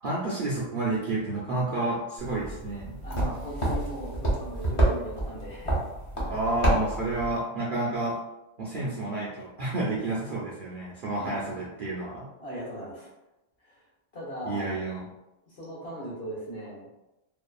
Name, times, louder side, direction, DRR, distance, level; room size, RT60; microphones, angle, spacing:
voice 1, 0.0-3.0 6.3-8.2 8.6-12.3 14.4-15.1, right 2 dB, 60° right, -6 dB, 0.5 m, -30 dB
sound 1, 2.2-7.4, right 1 dB, 30° left, 0.6 m, -29 dB
voice 2, 3.0-5.8 11.2-11.6 12.4-13.1 13.6-13.8 14.1-14.7 15.5-16.9, right 1 dB, 55° left, -7 dB, 1.2 m, -38 dB
2.7 x 2.4 x 2.3 m, 0.97 s
omnidirectional pair, 1.3 m